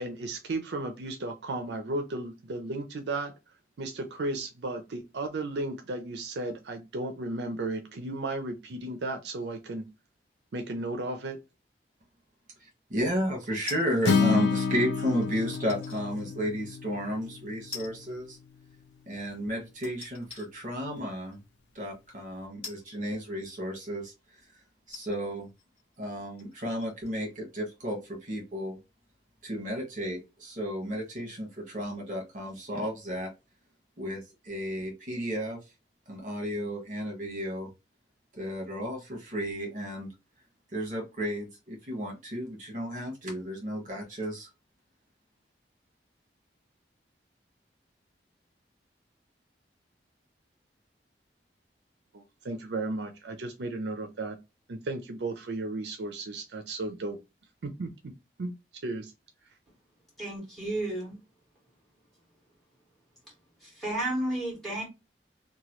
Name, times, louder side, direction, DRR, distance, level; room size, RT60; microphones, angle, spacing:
voice 1, 0.0-3.3 3.8-9.9 10.5-11.4 52.1-54.4 54.7-57.2 57.6-57.9 58.4-58.5 58.8-59.1, right 2 dB, 70° right, 0.5 m, -34 dB
voice 2, 12.6-18.4 19.1-21.4 21.7-24.1 24.9-25.5 26.0-28.8 29.4-33.3 34.0-35.6 36.1-37.7 38.3-40.1 40.7-44.5, equal, 45° right, 1.3 m, -33 dB
sound 1, 13.7-14.2 15.5-16.0 16.6-16.7 17.7-18.2 18.4-18.5 19.8-20.5 21.3-21.4 22.6-23.7 24.4-24.5 24.9-27.3 27.6-27.7, left 5 dB, 35° left, 1.3 m, -45 dB
Acoustic guitar, 14.0-18.3, left 5 dB, 85° left, 0.6 m, -29 dB
voice 3, 60.2-61.2 63.6-64.8, right 1 dB, ahead, 1.8 m, -32 dB
2.9 x 2.2 x 3.0 m
head